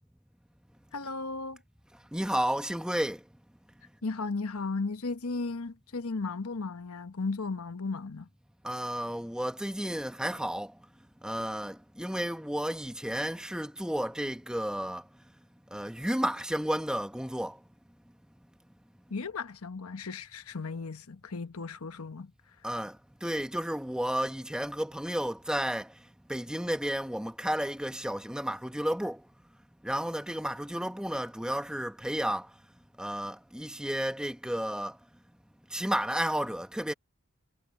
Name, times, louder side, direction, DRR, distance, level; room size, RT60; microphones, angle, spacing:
voice 1, 0.9-1.6 4.0-8.3 19.1-22.3, left 3 dB, 80° left, 1.0 m, -35 dB
voice 2, 2.1-3.3 8.6-10.8 11.2-15.1 15.7-17.6 22.6-29.3 29.8-32.6 33.0-35.0 35.7-36.9, equal, 5° right, 1.1 m, -32 dB
head